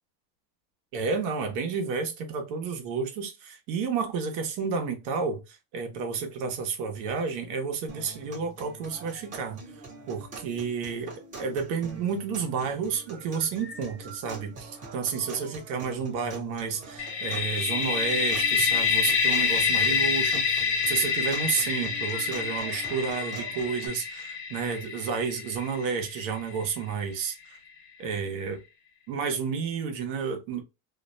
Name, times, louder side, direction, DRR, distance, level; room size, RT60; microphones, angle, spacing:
voice 1, 0.9-9.6 10.1-20.4 20.9-27.6 28.0-28.6 29.1-30.6, right 5 dB, 60° right, 0.9 m, -31 dB
sound 1, 7.9-23.9, right 3 dB, 20° right, 0.8 m, -45 dB
sound 2, 17.0-26.7, left 6 dB, 50° left, 0.8 m, -27 dB
2.5 x 2.1 x 2.5 m
cardioid pair, 160°, 38 cm